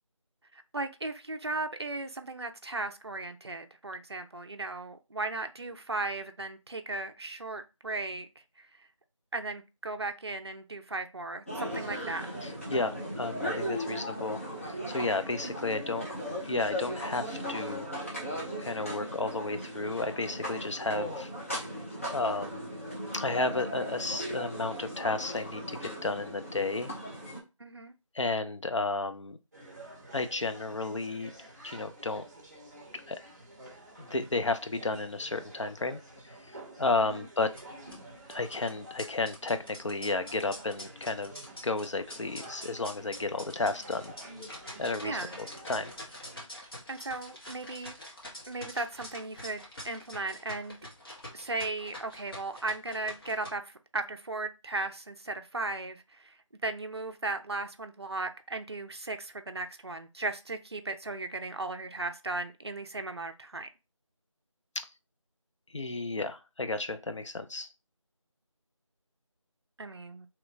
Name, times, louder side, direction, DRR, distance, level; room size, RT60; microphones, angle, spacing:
voice 1, 0.5-8.3 8.6-8.9 9.3-12.3 27.6-27.9 37.0-37.3 45.0-45.4 46.9-47.9 48.5-50.8 51.3-63.7 69.8-70.3, right 2 dB, 50° right, 0.5 m, -36 dB
sound 1, 11.5-27.4, equal, 25° left, 0.8 m, -37 dB
voice 2, 12.4-16.1 16.4-17.9 18.6-21.3 22.1-22.7 23.1-26.9 28.1-29.4 30.1-31.3 31.6-32.2 33.1-33.2 34.0-36.0 36.5-37.5 38.3-41.3 41.6-44.1 44.8-45.9 64.8-64.9 65.7-67.7, left 3 dB, 65° left, 0.5 m, -32 dB
sound 2, 29.5-46.5, right 1 dB, 30° right, 0.8 m, -50 dB
sound 3, 37.5-53.5, left 1 dB, 45° left, 1.3 m, -46 dB
3.0 x 2.4 x 3.2 m
figure-of-eight pair, 175°, 17 cm